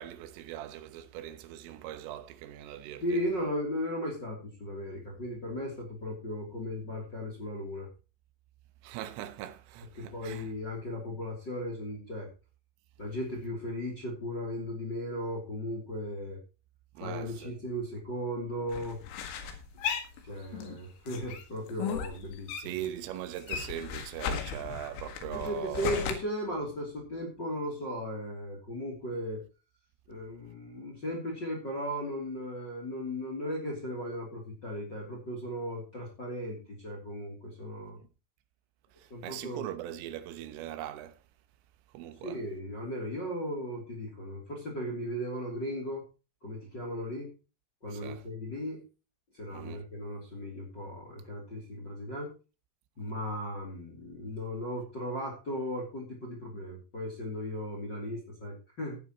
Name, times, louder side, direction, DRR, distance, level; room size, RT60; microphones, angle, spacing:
voice 1, 0.0-3.2 8.8-10.5 17.0-17.6 22.6-26.1 39.0-41.2 41.9-42.4 47.9-48.2 49.5-49.8, right 12 dB, 85° right, 3.7 m, -40 dB
voice 2, 3.0-7.9 9.9-12.3 13.0-16.4 17.0-19.0 20.2-22.9 25.3-29.4 30.1-38.0 39.1-39.6 42.2-46.0 46.4-47.3 47.8-48.8 49.3-52.3 53.0-59.0, equal, 25° left, 2.8 m, -36 dB
sound 1, 18.7-20.8 21.1-22.9 23.2-26.1, left 7 dB, 85° left, 4.4 m, -36 dB
14.5 x 11.0 x 3.0 m
omnidirectional pair, 5.7 m